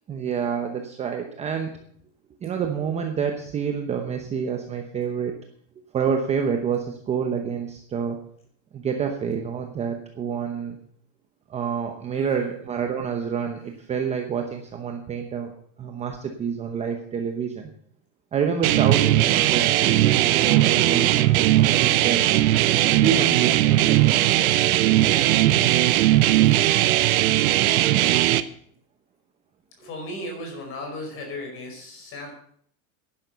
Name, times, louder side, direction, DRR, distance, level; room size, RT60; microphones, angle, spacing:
voice 1, 0.1-1.7 2.4-5.4 5.9-8.2 8.7-10.8 11.5-15.5 15.8-17.7 18.3-22.2 22.9-24.2 25.1-25.2, right 7 dB, 15° right, 4 dB, 0.8 m, -28 dB
voice 2, 12.1-12.5 29.8-32.3, left 1 dB, 30° left, 3 dB, 5.0 m, -36 dB
sound 1, 18.6-28.4, right 15 dB, 75° right, 1.0 m, -19 dB
11.0 x 11.0 x 6.7 m, 0.63 s
supercardioid pair, 170°, 43 cm